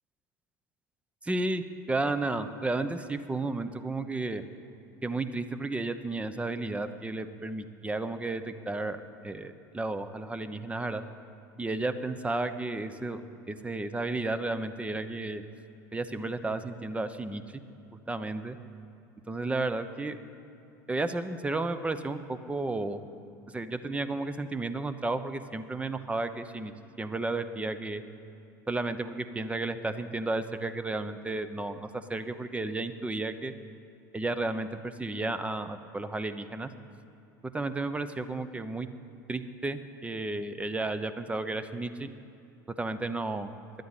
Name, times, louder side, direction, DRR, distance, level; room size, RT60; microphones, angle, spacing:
voice 1, 1.2-4.4 5.0-11.0 11.6-13.2 13.5-15.4 15.9-17.6 17.9-18.6 19.3-20.2 20.9-23.0 23.5-26.7 27.0-28.0 28.7-33.5 34.1-36.7 37.5-38.9 39.3-42.1 42.8-43.5, right 2 dB, 15° right, 11 dB, 0.8 m, -33 dB
11.5 x 9.1 x 9.0 m, 2.8 s
hypercardioid pair, 90°, 10 cm